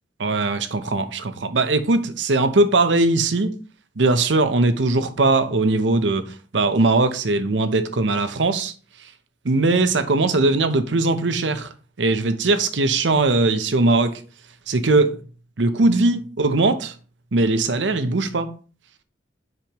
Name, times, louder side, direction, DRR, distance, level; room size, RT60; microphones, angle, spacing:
voice 1, 0.2-3.5 4.0-8.7 9.4-11.7 12.0-14.2 14.7-15.2 15.6-16.9 17.3-18.5, right 2 dB, 90° right, 0.8 m, -20 dB
7.5 x 5.2 x 3.0 m
head